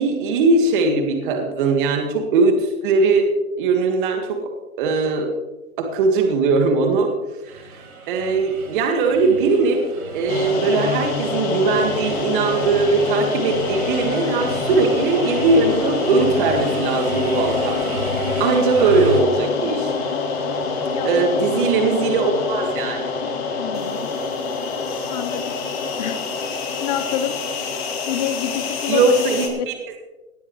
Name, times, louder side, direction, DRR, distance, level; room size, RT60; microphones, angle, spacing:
voice 1, 0.0-3.3 3.6-4.4 4.8-5.3 5.8-7.1 7.4-7.6 8.1-9.8 10.1-17.8 18.4-19.9 21.0-23.0 28.9-29.8, right 3 dB, 35° right, 4 dB, 1.9 m, -19 dB
sound 1, 7.5-19.2, right 2 dB, 80° right, 3.7 m, -33 dB
sound 2, 10.3-29.5, left 4 dB, 45° left, 3.1 m, -26 dB
voice 2, 20.9-21.7 23.5-24.1 25.1-25.6 26.0-26.2 26.8-27.4 28.1-29.1 29.6-29.7, left 10 dB, 30° left, 11 dB, 0.9 m, -27 dB
18.5 x 11.0 x 3.2 m, 1.1 s
hypercardioid pair, 145°, 43 cm